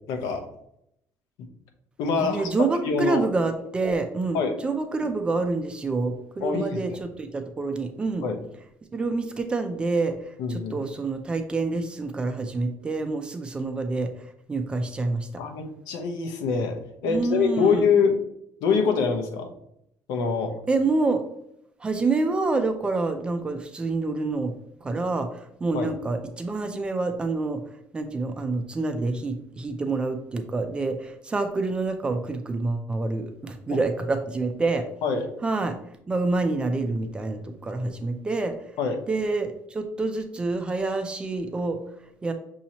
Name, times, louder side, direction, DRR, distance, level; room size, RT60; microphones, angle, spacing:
voice 1, 0.1-0.4 2.0-2.5 2.8-3.3 4.3-4.5 6.4-7.0 8.2-8.4 10.4-10.7 15.4-18.2 18.6-19.5 20.1-20.5 25.7-25.9 35.0-35.3 38.8-39.0, left 5 dB, 85° left, 4 dB, 0.8 m, -24 dB
voice 2, 2.2-8.3 8.9-14.1 14.5-15.3 17.1-17.9 20.7-21.2 21.8-24.5 24.8-27.6 27.9-34.9 35.4-35.8 36.1-38.5 39.1-41.8 42.2-42.3, right 3 dB, 15° right, 7 dB, 0.4 m, -27 dB
6.2 x 2.8 x 2.8 m, 0.76 s
cardioid pair, 180°, 6 cm